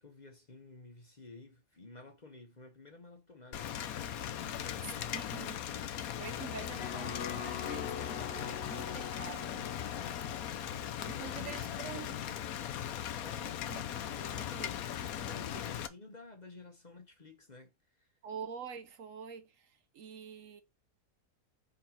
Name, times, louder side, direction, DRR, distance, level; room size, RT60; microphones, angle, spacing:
voice 1, 0.0-5.2 10.2-12.4 13.2-13.6 15.2-18.2, left 3 dB, 35° left, 1.0 m, -53 dB
Rain, 3.5-15.9, left 10 dB, 80° left, 1.1 m, -39 dB
voice 2, 5.1-5.6 6.2-10.2 10.6-10.8 11.0-12.2 13.7-13.9 14.1-15.4 18.2-20.6, right 7 dB, 65° right, 1.1 m, -47 dB
sound 1, 6.3-10.5, left 7 dB, 55° left, 0.7 m, -44 dB
4.5 x 3.9 x 5.7 m
omnidirectional pair, 1.5 m